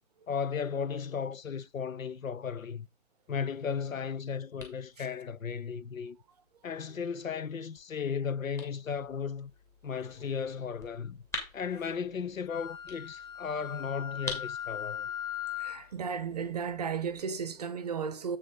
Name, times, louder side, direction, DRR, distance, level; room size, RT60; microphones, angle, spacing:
voice 1, 0.3-2.9 3.3-6.2 6.6-9.5 9.8-11.2 11.5-15.1, left 6 dB, 70° left, 0.6 m, -35 dB
sound 1, 3.7-17.2, left 2 dB, 5° left, 1.6 m, -48 dB
Wind instrument woodwind instrument, 12.5-15.8, left 10 dB, 25° left, 1.6 m, -39 dB
voice 2, 15.6-18.4, right 6 dB, 30° right, 0.8 m, -34 dB
7.8 x 5.9 x 3.8 m
figure-of-eight pair, 135°, 42 cm